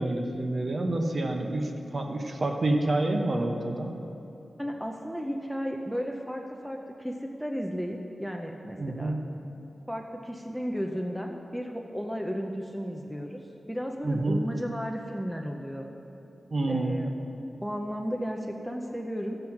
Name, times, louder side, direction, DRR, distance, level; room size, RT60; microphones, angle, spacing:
voice 1, 0.0-4.0 8.8-9.2 14.0-14.4 16.5-16.9, right 2 dB, 35° right, 3 dB, 0.9 m, -28 dB
voice 2, 4.6-9.1 9.9-13.4 13.7-15.9 16.7-17.1 17.6-19.4, equal, ahead, 1 dB, 0.6 m, -34 dB
13.5 x 7.9 x 5.8 m, 2.9 s
wide cardioid pair, 180°, 0 cm